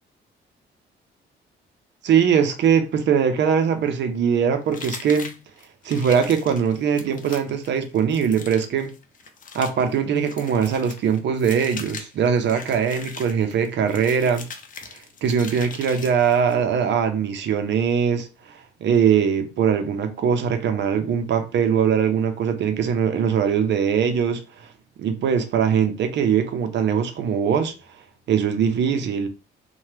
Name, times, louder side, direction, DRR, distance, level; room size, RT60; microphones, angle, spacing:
voice 1, 2.0-5.3 5.8-8.9 9.5-14.5 15.2-24.7 25.0-27.7 28.3-29.3, right 7 dB, 65° right, 0.6 m, -21 dB
sound 1, 4.7-16.6, left 5 dB, 45° left, 0.5 m, -40 dB
2.8 x 2.2 x 3.2 m
cardioid pair, 90°, 20 cm